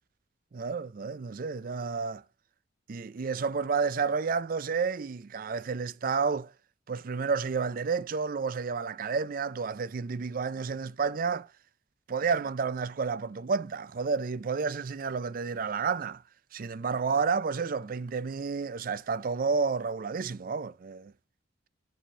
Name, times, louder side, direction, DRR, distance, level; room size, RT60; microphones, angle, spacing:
voice 1, 0.5-2.2 2.9-6.5 6.9-11.5 12.1-16.2 16.5-21.1, right 5 dB, 45° right, 0.4 m, -30 dB
7.6 x 5.0 x 5.5 m
head